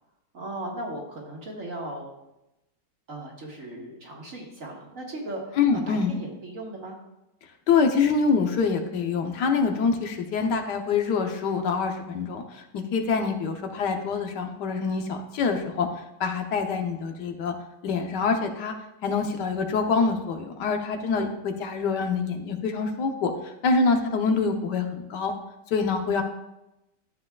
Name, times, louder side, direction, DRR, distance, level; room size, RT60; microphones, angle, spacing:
voice 1, 0.3-2.1 3.1-7.0, right 1 dB, 50° right, -2 dB, 2.0 m, -37 dB
voice 2, 5.6-6.2 7.7-15.9 16.2-17.5 17.8-18.7 19.0-25.4 25.7-26.2, left 5 dB, 80° left, 5 dB, 1.5 m, -25 dB
13.0 x 7.5 x 2.3 m, 0.91 s
omnidirectional pair, 1.8 m